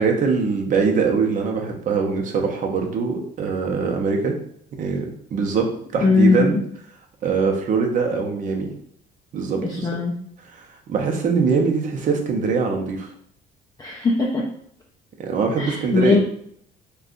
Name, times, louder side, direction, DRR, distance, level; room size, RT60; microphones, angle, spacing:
voice 1, 0.0-4.4 4.8-6.6 7.2-8.7 9.3-9.9 10.6-13.1 15.2-16.2, right 5 dB, 50° right, 2 dB, 0.7 m, -22 dB
voice 2, 6.0-6.5 9.6-10.1 13.8-14.5 15.6-16.2, left 4 dB, 20° left, -1 dB, 0.4 m, -19 dB
2.6 x 2.3 x 3.7 m, 0.67 s
cardioid pair, 110°, 17 cm